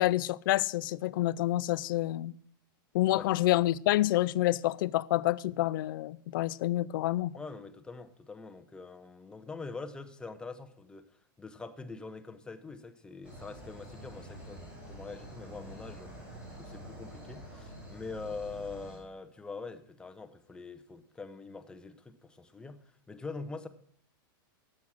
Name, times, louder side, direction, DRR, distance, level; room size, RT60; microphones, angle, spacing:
voice 1, 0.0-2.3 2.9-7.3, left 16 dB, 65° left, 0.4 m, -28 dB
voice 2, 7.3-16.1 16.5-23.7, left 4 dB, 5° left, 0.7 m, -44 dB
sound 1, 13.2-19.0, right 1 dB, 10° right, 4.7 m, -47 dB
9.9 x 7.5 x 6.3 m
supercardioid pair, 150°, 12 cm